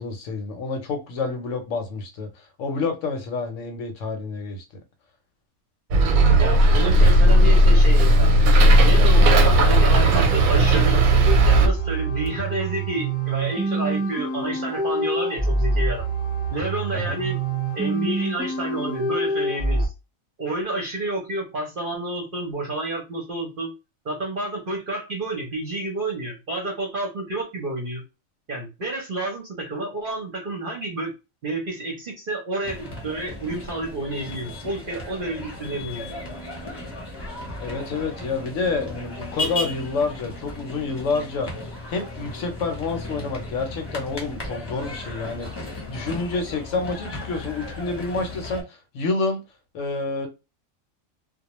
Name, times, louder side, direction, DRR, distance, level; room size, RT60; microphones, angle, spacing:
voice 1, 0.0-4.6 16.9-17.2 37.6-41.5 41.9-49.4 49.7-50.3, left 4 dB, 70° left, 0.9 m, -28 dB
Bus, 5.9-11.7, right 1 dB, 90° right, 1.0 m, -15 dB
voice 2, 6.4-8.3 8.8-16.1 16.5-17.4 17.7-19.9 20.4-23.7 24.0-28.0 28.5-31.1 31.4-36.2, right 2 dB, 50° right, 0.7 m, -30 dB
sound 1, 11.3-19.9, right 2 dB, 10° right, 0.4 m, -25 dB
sound 2, 32.6-48.6, left 2 dB, 25° left, 0.7 m, -35 dB
2.2 x 2.2 x 2.9 m
omnidirectional pair, 1.4 m